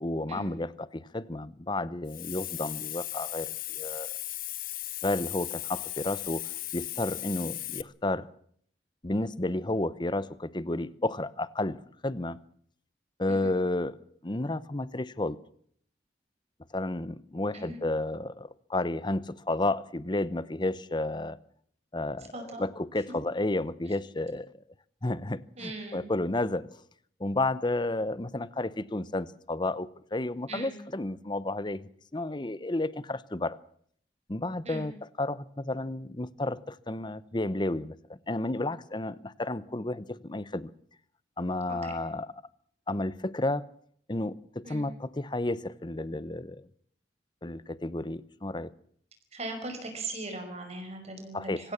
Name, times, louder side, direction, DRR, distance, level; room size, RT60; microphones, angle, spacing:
voice 1, 0.0-4.1 5.0-6.4 6.7-8.3 9.0-11.8 12.0-12.4 13.2-14.0 14.2-15.4 16.7-21.4 21.9-22.3 22.6-24.5 25.0-26.7 27.2-31.8 32.1-33.6 34.3-34.9 35.2-37.9 38.3-40.7 41.4-42.3 42.9-43.6 44.1-46.6 47.4-48.7 51.3-51.6, left 2 dB, 25° left, 0.9 m, -31 dB
Hiss, 2.1-7.8, left 15 dB, 50° left, 0.9 m, -37 dB
voice 2, 25.6-26.1 30.5-30.8 34.6-34.9 41.8-41.9 44.6-44.8 49.3-51.7, right 2 dB, 40° right, 5.4 m, -39 dB
25.5 x 16.0 x 7.2 m
head